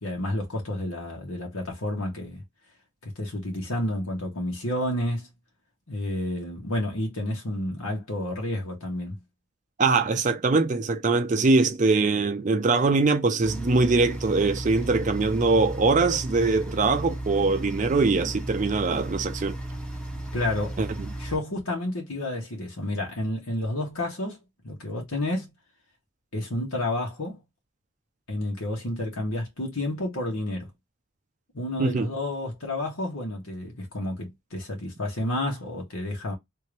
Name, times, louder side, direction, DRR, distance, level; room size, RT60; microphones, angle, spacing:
voice 1, 0.0-2.4 3.0-5.3 5.9-9.2 20.3-20.8 21.2-24.4 24.6-25.5 26.3-27.4 28.3-30.7 31.5-36.3, left 1 dB, 85° left, 1.6 m, -30 dB
voice 2, 9.8-19.6 20.8-20.9 31.8-32.1, right 3 dB, 35° right, 0.4 m, -22 dB
sound 1, 13.4-21.4, right 1 dB, 5° left, 0.8 m, -34 dB
3.4 x 2.9 x 3.2 m
head